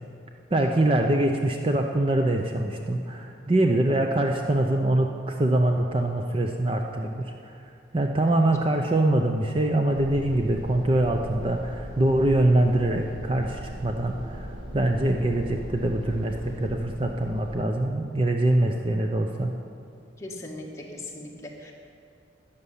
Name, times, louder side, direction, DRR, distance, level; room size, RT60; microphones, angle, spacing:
voice 1, 0.5-7.5 7.9-19.5, right 1 dB, 30° right, 3 dB, 0.6 m, -24 dB
sound 1, 9.9-17.6, equal, 85° right, 3.8 m, -39 dB
voice 2, 20.2-21.7, left 1 dB, 15° left, -2 dB, 1.5 m, -39 dB
12.5 x 6.8 x 9.8 m, 2.5 s
head